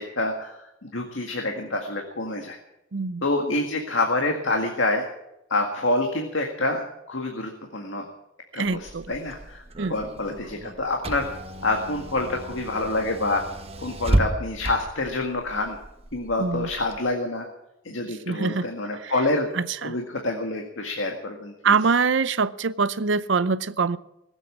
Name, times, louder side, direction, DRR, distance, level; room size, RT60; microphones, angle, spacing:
voice 1, 0.0-2.6 3.2-5.0 5.5-8.1 8.5-9.6 9.9-11.3 11.6-13.4 13.8-15.8 16.1-17.5 17.8-19.5 19.8-21.7, left 2 dB, 75° left, 1.9 m, -27 dB
voice 2, 2.9-3.2 8.6-9.1 9.8-10.0 16.4-16.7 18.1-18.7 19.0-19.1 19.5-20.0 21.6-24.0, right 5 dB, 70° right, 0.6 m, -24 dB
Car / Engine, 8.6-17.0, right 1 dB, 30° right, 1.0 m, -32 dB
19.5 x 8.3 x 8.7 m
head